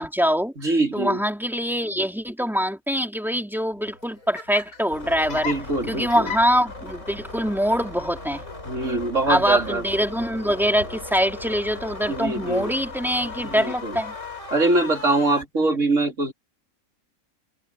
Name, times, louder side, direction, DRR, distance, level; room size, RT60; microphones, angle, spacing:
voice 1, 0.0-5.5 5.9-8.4 9.3-14.1 15.6-15.8, equal, ahead, 3.0 m, -24 dB
voice 2, 0.6-1.2 5.3-6.3 8.7-9.8 12.1-12.7 13.4-14.0 14.5-16.3, right 2 dB, 60° right, 3.7 m, -23 dB
Laughter, 3.7-11.3, left 5 dB, 90° left, 7.9 m, -40 dB
sound 1, 4.9-15.4, left 3 dB, 55° left, 5.9 m, -38 dB
omnidirectional pair, 1.5 m